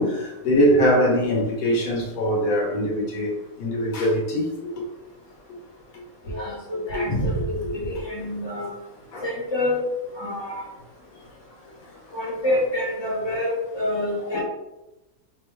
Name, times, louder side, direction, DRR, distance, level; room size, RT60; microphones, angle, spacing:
voice 1, 0.0-4.5 7.1-7.4 9.1-9.2 14.3-14.4, equal, 75° left, 1.5 m, -22 dB
voice 2, 6.3-8.7 9.2-9.8 10.1-10.7 12.1-14.4, left 1 dB, 20° left, 1.1 m, -27 dB
4.4 x 2.7 x 3.3 m
omnidirectional pair, 1.5 m